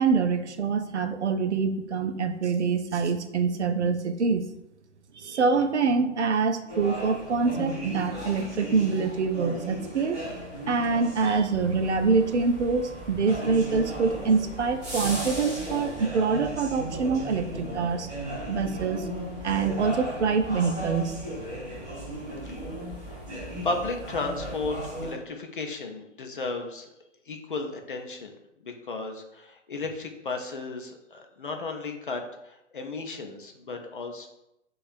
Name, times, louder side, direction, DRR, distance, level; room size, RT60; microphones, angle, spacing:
voice 1, 0.0-4.5 5.2-10.2 10.7-18.1 18.5-19.1 19.4-21.2, right 5 dB, 65° right, 9 dB, 0.5 m, -25 dB
sound 1, 6.7-25.1, equal, 15° right, 1.3 m, -36 dB
voice 2, 23.6-26.9 27.3-28.3 28.6-34.3, left 3 dB, 45° left, 4 dB, 0.5 m, -34 dB
6.0 x 2.3 x 2.4 m, 0.87 s
figure-of-eight pair, 130°, 38 cm